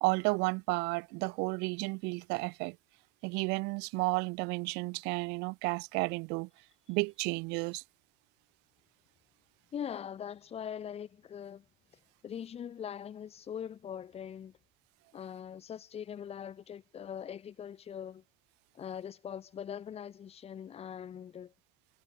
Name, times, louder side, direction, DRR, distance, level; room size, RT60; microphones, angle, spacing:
voice 1, 0.0-2.8 3.2-6.5 6.9-7.8, right 28 dB, 65° right, 1.6 m, -32 dB
voice 2, 9.7-11.6 12.2-14.5 15.1-18.2 18.7-21.5, left 8 dB, 35° left, 7.4 m, -42 dB
supercardioid pair, 125°, 19 cm